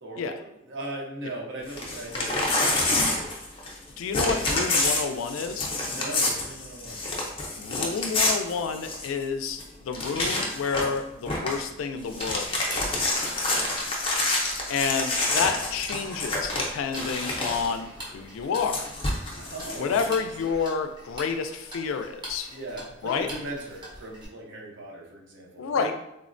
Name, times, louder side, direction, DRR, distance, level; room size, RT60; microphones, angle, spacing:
voice 1, 0.0-3.3 5.8-7.0 13.6-14.1 19.4-20.1 20.4-20.5 22.5-25.9, right 1 dB, 65° right, -2 dB, 0.7 m, -39 dB
Crumpling crinkling / Tearing, 1.7-3.8 4.1-9.2 9.6-9.7 9.9-11.0 11.3-11.6 12.0-17.7 18.5-20.1, left 2 dB, 25° left, 0.5 m, -27 dB
voice 2, 4.0-5.7 7.6-13.1 14.7-18.9 19.8-22.5 23.0-23.3 25.6-25.9, left 5 dB, 80° left, 7 dB, 0.3 m, -29 dB
Tick-tock, 12.0-24.2, right 1 dB, 25° right, 0.6 m, -44 dB
3.3 x 2.1 x 2.5 m, 0.84 s
head